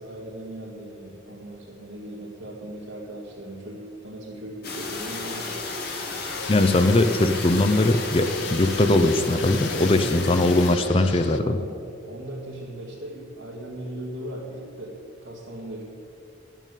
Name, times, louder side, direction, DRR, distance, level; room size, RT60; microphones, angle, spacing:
voice 1, 0.0-5.6 9.7-11.1 11.4-11.7 12.0-14.9 15.2-15.8, right 1 dB, 70° right, -6 dB, 2.2 m, -38 dB
sound 1, 4.6-10.8, left 3 dB, 50° left, 1.8 m, -33 dB
Fixed-wing aircraft airplane, 6.2-11.4, left 5 dB, 70° left, 0.7 m, -37 dB
voice 2, 6.5-11.6, left 2 dB, 30° left, 9 dB, 0.5 m, -20 dB
12.0 x 7.3 x 8.4 m, 2.6 s
head